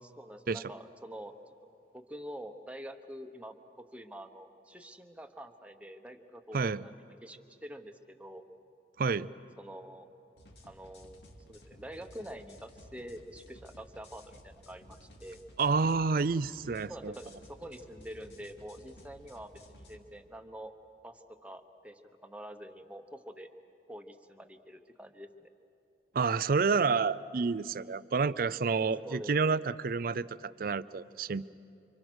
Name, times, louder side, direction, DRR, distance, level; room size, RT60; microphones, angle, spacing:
voice 1, 0.0-1.4 1.9-6.9 7.2-8.4 9.6-10.1 10.6-15.4 16.9-20.7 21.0-23.5 23.9-25.5 28.8-29.5, equal, 10° right, 6 dB, 1.1 m, -46 dB
voice 2, 9.0-9.3 15.6-17.1 26.1-31.5, right 4 dB, 55° right, 17 dB, 0.5 m, -29 dB
sound 1, 10.4-20.0, left 1 dB, 70° left, 2.7 m, -55 dB
29.0 x 25.0 x 6.3 m, 2.8 s
head